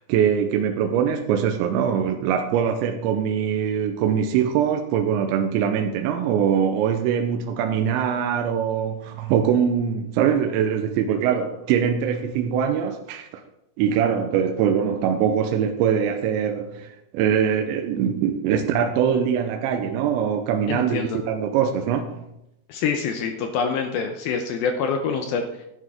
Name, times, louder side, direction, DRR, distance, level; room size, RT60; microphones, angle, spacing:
voice 1, 0.0-13.4 13.8-22.3, right 8 dB, 90° right, 5 dB, 3.0 m, -23 dB
voice 2, 20.7-21.2 22.7-25.7, left 5 dB, 80° left, 5 dB, 2.2 m, -26 dB
11.5 x 11.0 x 3.6 m, 0.84 s
omnidirectional pair, 5.3 m